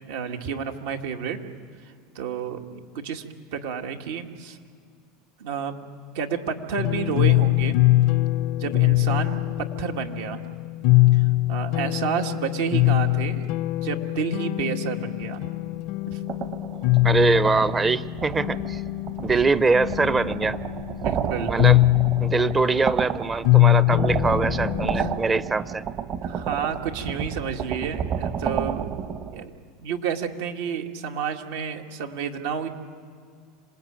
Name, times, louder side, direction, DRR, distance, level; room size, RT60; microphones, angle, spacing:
voice 1, 0.0-1.4 2.1-3.2 3.5-4.6 5.4-5.7 6.1-7.8 8.6-10.4 11.1-13.5 13.8-15.5 16.1-16.2 21.0-21.5 24.9-25.1 26.2-28.9 29.3-29.5 29.8-32.7, right 7 dB, 80° right, 4 dB, 2.1 m, -30 dB
sound 1, 6.8-25.2, left 19 dB, 60° left, 0.5 m, -23 dB
sound 2, 16.3-29.4, right 7 dB, 45° right, 1.4 m, -31 dB
voice 2, 17.0-18.8 19.2-20.6 21.5-21.8 22.2-25.8, right 4 dB, 20° right, 16 dB, 0.6 m, -23 dB
26.5 x 19.5 x 9.0 m, 2.1 s
supercardioid pair, 120°, 0 cm